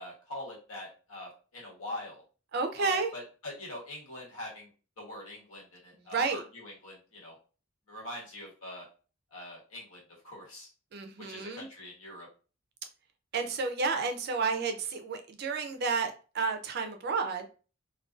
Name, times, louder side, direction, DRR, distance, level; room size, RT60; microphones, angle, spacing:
voice 1, 0.0-2.2 2.8-4.7 5.0-7.4 7.9-8.9 9.3-10.7 11.2-12.3, left 1 dB, 85° left, 1.1 m, -43 dB
voice 2, 2.5-3.1 6.0-6.4 10.9-11.7 13.3-17.5, right 4 dB, 50° right, 0.3 m, -31 dB
2.4 x 2.2 x 2.3 m
head